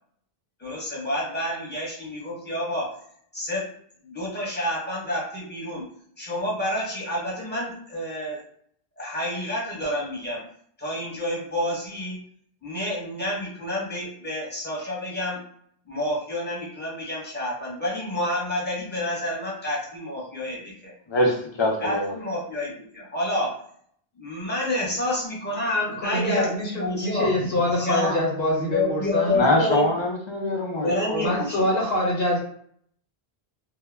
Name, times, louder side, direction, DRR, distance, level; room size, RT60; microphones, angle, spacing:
voice 1, 0.6-2.9 3.3-3.7 4.0-5.9 6.2-8.4 9.0-10.4 10.8-12.2 12.6-15.4 15.9-20.9 21.8-23.5 24.2-27.3 27.8-28.2 28.6-29.9 30.8-31.8, left 1 dB, 10° left, -5 dB, 0.8 m, -29 dB
voice 2, 21.1-22.2 29.3-31.5, left 1 dB, 40° left, 0 dB, 0.4 m, -24 dB
voice 3, 25.9-29.4 31.2-32.4, left 1 dB, 75° left, -3 dB, 0.9 m, -25 dB
2.1 x 2.1 x 3.3 m, 0.63 s
omnidirectional pair, 1.0 m